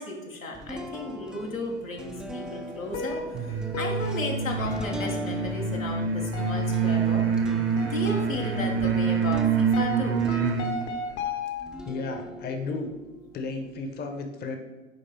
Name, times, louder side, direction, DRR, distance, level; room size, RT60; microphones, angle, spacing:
voice 1, 0.0-7.3 7.8-10.2, left 2 dB, 85° left, 0 dB, 1.2 m, -34 dB
sound 1, 0.5-11.1 11.6-13.9, right 2 dB, ahead, 0.5 m, -41 dB
sound 2, 2.9-11.9, left 3 dB, 55° left, 1.1 m, -37 dB
sound 3, 3.3-10.7, right 6 dB, 30° right, 0.9 m, -26 dB
voice 2, 11.8-12.9 13.3-14.6, left 3 dB, 25° left, 5 dB, 0.8 m, -33 dB
9.4 x 3.2 x 4.0 m, 1.2 s
figure-of-eight pair, 85°, 39 cm